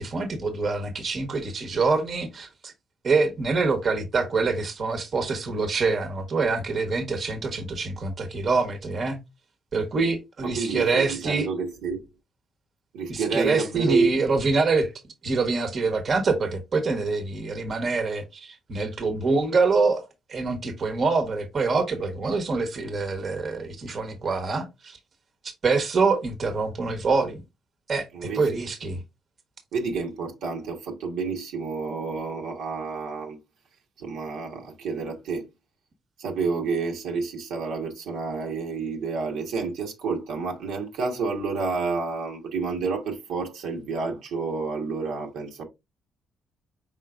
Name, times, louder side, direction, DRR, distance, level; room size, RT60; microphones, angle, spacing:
voice 1, 0.0-2.7 3.0-9.2 9.7-11.5 13.1-14.9 15.2-25.0 25.4-27.4 27.9-29.0, right 4 dB, 45° right, 1.1 m, -25 dB
voice 2, 10.4-12.1 12.9-14.2 28.1-28.6 29.7-33.4 34.0-35.5 36.2-45.6, right 4 dB, 90° right, 1.3 m, -29 dB
5.0 x 3.8 x 2.4 m
cardioid pair, 90°, 0 cm